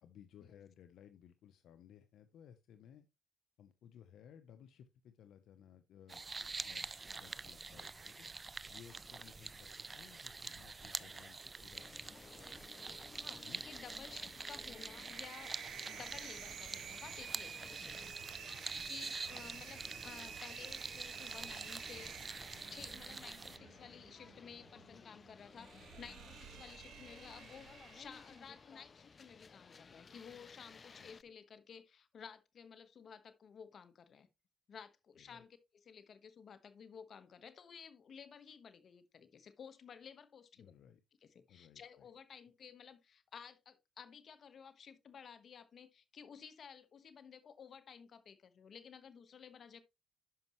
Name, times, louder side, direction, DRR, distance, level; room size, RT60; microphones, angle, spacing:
voice 1, 0.0-3.1 3.6-8.3 8.7-12.5 13.4-13.6 14.2-14.3 18.7-19.1 31.0-31.1 35.2-35.4 40.6-41.0 41.5-42.1, left 9 dB, 75° left, 0.7 m, -60 dB
sound 1, 6.1-23.6, right 3 dB, 25° right, 0.5 m, -46 dB
sound 2, 11.7-31.2, left 5 dB, 40° left, 0.4 m, -58 dB
voice 2, 13.2-15.5 15.9-18.1 18.8-34.3 34.7-40.7 41.2-49.8, left 7 dB, 55° left, 1.2 m, -54 dB
sound 3, 13.9-28.5, right 9 dB, 75° right, 1.0 m, -52 dB
11.5 x 5.3 x 3.1 m
cardioid pair, 90°, 0 cm